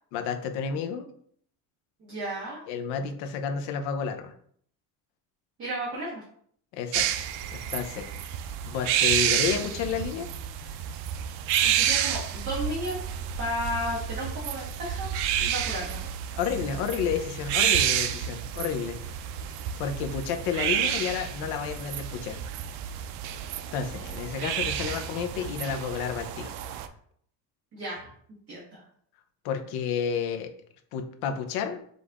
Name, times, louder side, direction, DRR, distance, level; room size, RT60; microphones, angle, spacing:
voice 1, 0.1-1.1 2.7-4.3 6.7-8.3 8.6-10.3 16.4-19.2 19.8-22.4 23.7-26.5 29.4-30.5 30.9-31.8, left 7 dB, 70° left, 7 dB, 0.7 m, -31 dB
voice 2, 2.0-2.6 5.6-6.2 11.6-13.0 13.4-16.0 27.7-28.1 28.5-28.8, equal, 30° right, -6 dB, 1.3 m, -33 dB
sound 1, 6.9-26.9, right 10 dB, 80° right, 0.5 m, -30 dB
5.3 x 2.6 x 3.4 m, 0.62 s
cardioid pair, 160°, 40 cm